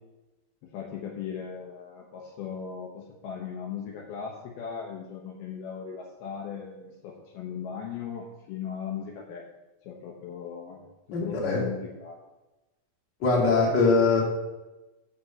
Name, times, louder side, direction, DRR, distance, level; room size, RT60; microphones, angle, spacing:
voice 1, 0.7-9.5 9.8-12.2, left 7 dB, 70° left, 0 dB, 2.7 m, -38 dB
voice 2, 11.1-11.6 13.2-14.2, left 4 dB, 30° left, -3 dB, 2.3 m, -22 dB
7.3 x 6.6 x 6.9 m, 1.1 s
omnidirectional pair, 5.0 m